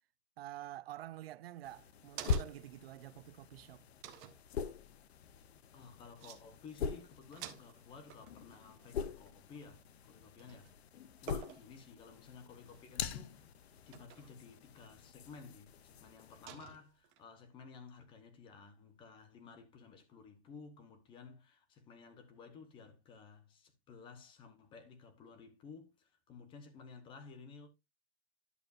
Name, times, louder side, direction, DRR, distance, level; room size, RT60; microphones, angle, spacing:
voice 1, 0.4-3.9, right 14 dB, 65° right, 0.5 m, -48 dB
sound 1, 1.5-2.8 3.2-3.3 4.0-4.4 5.8-5.9 6.2-6.4 6.7-6.9 7.2-10.0 10.4-10.8 11.3-11.8 12.6-13.1 13.9-14.4 15.0-15.1 16.5-17.2, right 10 dB, 15° right, 0.4 m, -50 dB
sound 2, 1.6-16.5, left 5 dB, 70° left, 1.0 m, -43 dB
voice 2, 5.7-10.7 11.2-13.5 13.9-27.7, left 5 dB, 15° left, 1.1 m, -54 dB
11.0 x 6.5 x 2.5 m
hypercardioid pair, 165°, 33 cm